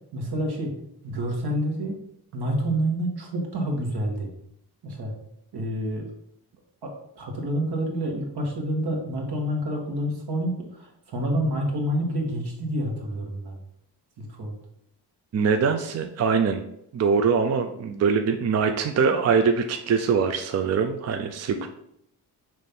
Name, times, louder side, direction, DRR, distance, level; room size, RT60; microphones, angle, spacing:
voice 1, 0.1-0.7 1.0-2.0 2.3-4.3 4.8-5.1 5.5-6.0 6.8-13.6 14.2-14.5 21.6-21.7, right 1 dB, 75° right, 1 dB, 1.7 m, -28 dB
voice 2, 15.3-16.6 16.9-21.7, right 5 dB, 40° right, 6 dB, 0.4 m, -23 dB
5.9 x 3.2 x 5.2 m, 0.74 s
wide cardioid pair, 170°, 40 cm